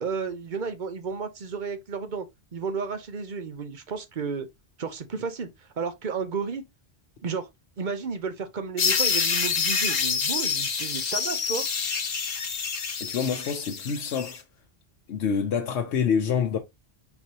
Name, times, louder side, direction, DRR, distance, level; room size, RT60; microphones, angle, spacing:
voice 1, 0.0-2.3 2.5-4.5 4.8-5.5 5.8-6.6 7.2-7.5 7.8-11.6, right 5 dB, 50° right, 0.9 m, -32 dB
sound 1, 8.8-14.4, left 6 dB, 45° left, 0.7 m, -27 dB
voice 2, 13.0-14.4 15.1-16.6, left 6 dB, 80° left, 1.0 m, -26 dB
4.4 x 4.0 x 2.8 m
omnidirectional pair, 1.1 m